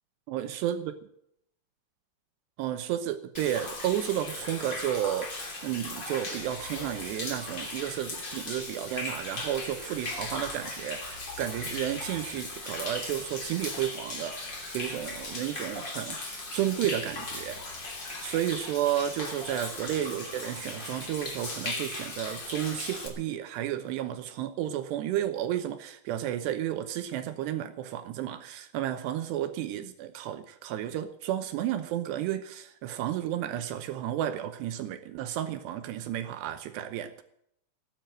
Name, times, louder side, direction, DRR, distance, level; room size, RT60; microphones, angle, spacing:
voice 1, 0.3-0.9 2.6-17.6 18.2-37.2, right 11 dB, 80° right, 9 dB, 2.6 m, -32 dB
Human voice / Rain / Stream, 3.3-23.1, left 2 dB, 30° left, 2.9 m, -38 dB
18.0 x 9.2 x 7.7 m, 0.73 s
omnidirectional pair, 5.6 m